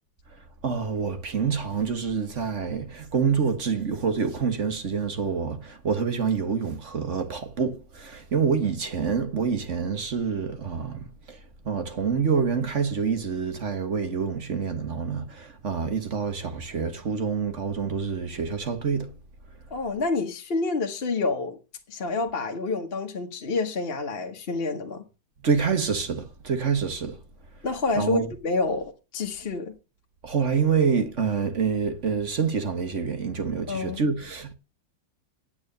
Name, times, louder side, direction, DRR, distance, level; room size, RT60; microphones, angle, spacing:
voice 1, 0.6-11.4 11.6-19.1 25.4-27.2 27.9-28.3 30.2-34.5, right 6 dB, 40° right, 1.5 m, -27 dB
voice 2, 19.7-21.6 21.9-25.0 27.6-29.8 33.7-34.0, left 3 dB, 35° left, 1.4 m, -28 dB
9.3 x 8.7 x 6.6 m
omnidirectional pair, 2.1 m